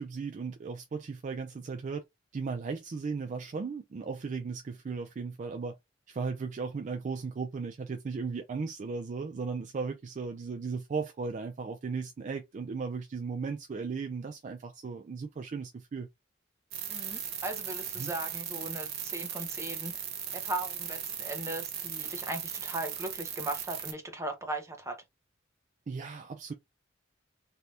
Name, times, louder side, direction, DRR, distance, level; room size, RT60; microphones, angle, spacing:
voice 1, 0.0-2.0 2.3-5.8 6.1-16.1 18.0-18.1 25.9-26.5, right 4 dB, 40° right, 0.3 m, -36 dB
sound 1, 16.7-23.9, right 9 dB, 55° right, 0.8 m, -38 dB
voice 2, 16.9-19.9 20.3-25.0, right 2 dB, 15° right, 0.8 m, -38 dB
3.2 x 2.8 x 2.4 m
head